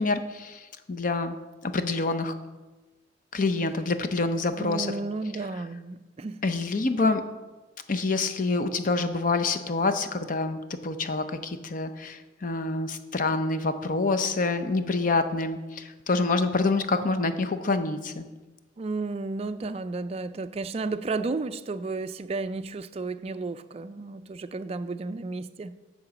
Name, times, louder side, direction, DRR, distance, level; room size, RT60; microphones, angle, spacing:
voice 1, 0.0-1.4 1.6-2.3 3.3-4.9 6.4-7.2 7.9-18.3, left 3 dB, 45° left, 0.6 m, -27 dB
voice 2, 4.6-6.4 18.8-25.8, right 3 dB, 30° right, 0.3 m, -33 dB
10.5 x 3.8 x 7.1 m
head